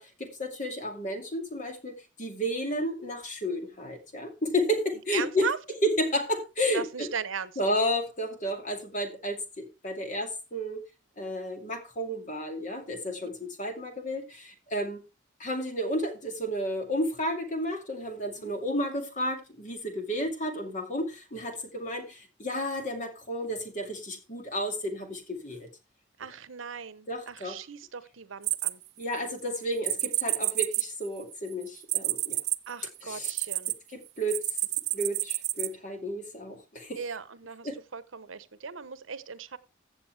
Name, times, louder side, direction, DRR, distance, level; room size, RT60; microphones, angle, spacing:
voice 1, 0.0-5.5 5.8-7.1 7.6-10.8 11.2-15.0 15.4-25.7 27.1-27.6 29.0-32.4 33.0-33.3 33.9-34.4 34.9-37.0 37.6-37.8, equal, 40° left, 2.4 m, -32 dB
voice 2, 5.1-5.6 6.7-7.5 18.4-18.5 26.2-28.8 32.7-33.7 37.0-39.6, right 6 dB, 85° right, 0.9 m, -37 dB
sound 1, 28.4-29.3 29.8-33.7 34.3-35.7, right 16 dB, 55° right, 0.5 m, -29 dB
15.5 x 7.1 x 3.3 m
head